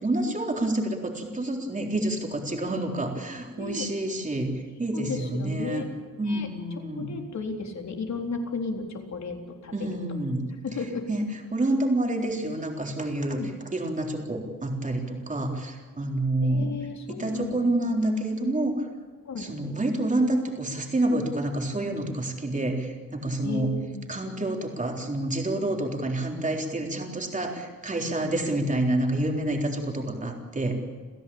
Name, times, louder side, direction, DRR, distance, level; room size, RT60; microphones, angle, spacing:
voice 1, 0.0-5.8 6.2-7.2 9.7-10.5 10.8-16.8 17.1-18.9 19.4-23.8 24.1-30.7, right 1 dB, 20° right, 2 dB, 3.8 m, -28 dB
voice 2, 4.9-5.9 6.3-6.5 7.0-8.8 9.1-9.4 9.6-9.9 10.6-11.0 13.4-13.5 16.4-17.6 19.3-19.5 23.4-24.1 28.2-28.3, left 4 dB, 55° left, 3 dB, 3.9 m, -34 dB
29.0 x 16.0 x 8.7 m, 1.5 s
wide cardioid pair, 150°, 34 cm